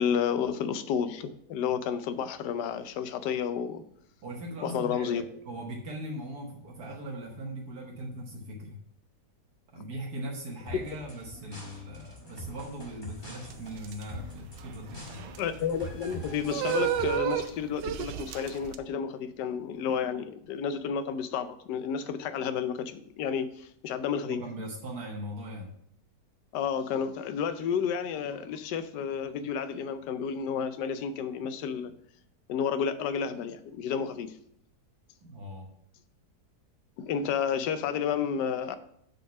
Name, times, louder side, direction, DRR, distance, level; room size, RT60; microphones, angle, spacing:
voice 1, 0.0-3.8 4.6-5.2 9.7-9.8 15.4-24.4 26.5-31.9 32.5-34.3 37.0-38.8, left 7 dB, 80° left, 11 dB, 1.2 m, -31 dB
voice 2, 4.2-8.8 9.7-15.4 24.2-25.7 35.2-35.7, right 1 dB, 65° right, 0 dB, 1.5 m, -40 dB
sound 1, 10.7-17.4, left 1 dB, 15° left, 1.8 m, -44 dB
sound 2, 13.5-18.8, right 10 dB, 85° right, 1.2 m, -33 dB
7.1 x 4.0 x 5.7 m, 0.69 s
omnidirectional pair, 1.8 m